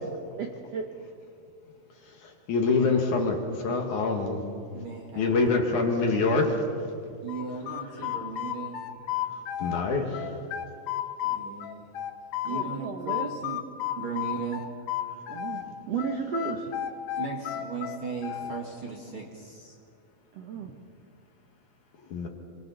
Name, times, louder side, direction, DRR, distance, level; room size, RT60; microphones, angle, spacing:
voice 1, 0.4-0.8 12.4-13.3 15.3-15.6 15.9-16.7 20.3-20.7, right 6 dB, 85° right, 2 dB, 1.4 m, -33 dB
voice 2, 2.1-4.4 5.2-6.6 8.0-8.1 9.3-10.4 22.1-22.3, left 3 dB, 55° left, 2 dB, 2.7 m, -26 dB
voice 3, 4.7-5.5 7.2-8.8 11.2-11.9 12.4-13.6 14.0-14.7 17.2-19.8, right 5 dB, 45° right, -1 dB, 1.8 m, -37 dB
sound 1, 7.3-9.8 10.1-12.7 13.1-15.7 16.0-18.6, left 12 dB, 85° left, 1.6 m, -32 dB
26.5 x 24.5 x 4.1 m, 2.4 s
omnidirectional pair, 4.8 m